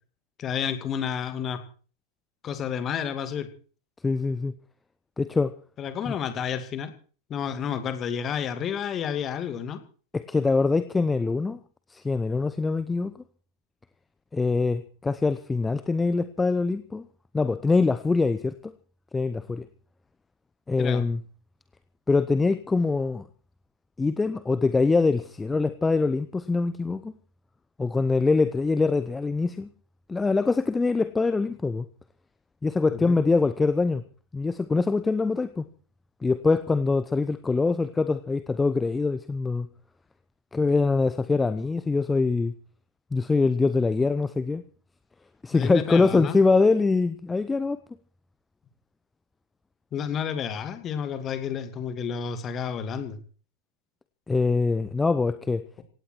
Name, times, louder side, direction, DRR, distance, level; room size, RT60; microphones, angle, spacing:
voice 1, 0.4-1.6 2.4-3.5 5.8-6.9 7.3-9.8 20.8-21.0 32.9-33.2 45.5-46.4 49.9-53.2, left 8 dB, 30° left, 9 dB, 2.6 m, -30 dB
voice 2, 4.0-4.5 5.2-5.5 6.1-6.2 10.1-11.6 11.9-13.2 14.3-17.1 17.3-18.7 19.1-19.6 20.7-21.2 22.1-23.3 24.0-27.1 27.8-29.7 30.1-31.8 32.6-34.0 34.3-35.6 36.2-39.7 40.5-42.5 43.1-44.6 45.4-47.8 54.3-55.6, left 3 dB, 10° left, 14 dB, 0.8 m, -24 dB
17.5 x 16.5 x 4.7 m, 0.41 s
figure-of-eight pair, 90°, 0 cm